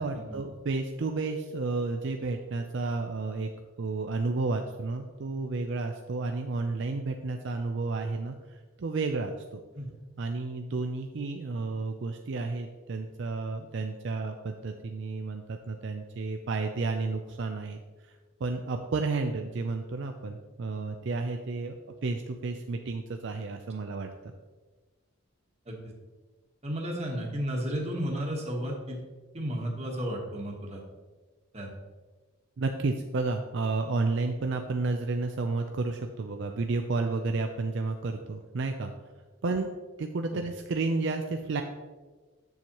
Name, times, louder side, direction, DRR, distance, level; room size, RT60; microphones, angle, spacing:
voice 1, 0.0-3.5 3.8-9.6 10.2-17.8 18.1-18.2 18.4-21.7 22.0-24.3 32.6-38.9 39.4-39.7 40.0-41.6, right 3 dB, 60° right, 5 dB, 0.4 m, -31 dB
voice 2, 26.6-29.0 29.3-30.8 31.5-31.7 40.3-40.4, equal, 30° right, 0 dB, 1.2 m, -33 dB
7.8 x 7.1 x 3.0 m, 1.3 s
head